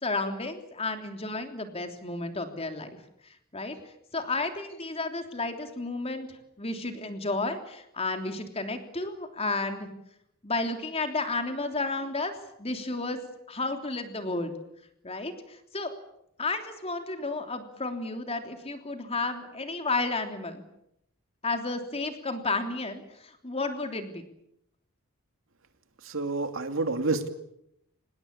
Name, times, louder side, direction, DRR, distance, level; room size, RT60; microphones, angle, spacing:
voice 1, 0.0-2.9 3.5-3.7 4.1-6.3 6.6-9.9 10.4-12.3 12.6-13.2 13.5-14.5 15.0-15.9 16.4-20.6 21.4-24.2, left 3 dB, 30° left, 6 dB, 3.3 m, -32 dB
voice 2, 26.0-27.3, right 3 dB, 65° right, 8 dB, 2.6 m, -28 dB
26.0 x 20.0 x 8.5 m, 0.77 s
head